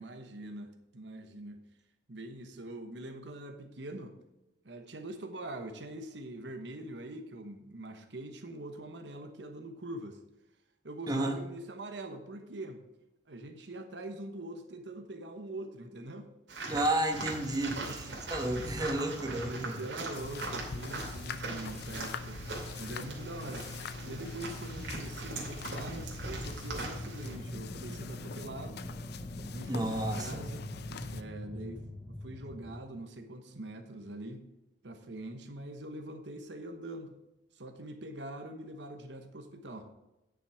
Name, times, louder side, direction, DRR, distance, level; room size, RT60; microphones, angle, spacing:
voice 1, 0.0-1.6 2.1-4.2 4.6-10.2 10.8-12.8 13.3-16.3 17.8-18.2 19.2-22.4 22.8-23.7 24.1-28.8 29.5-30.7 31.1-31.9 32.2-34.5 34.8-37.2 37.5-39.9, right 1 dB, 70° right, 6 dB, 1.1 m, -43 dB
voice 2, 11.1-11.4 16.7-19.8 29.7-30.4, right 1 dB, 20° right, 3 dB, 1.1 m, -32 dB
sound 1, 16.5-27.3, right 2 dB, 90° right, 2.6 m, -41 dB
sound 2, 20.1-31.2, left 3 dB, 60° left, 0.6 m, -43 dB
sound 3, 25.6-32.9, left 1 dB, 15° left, 0.9 m, -45 dB
9.8 x 6.2 x 4.9 m, 0.98 s
head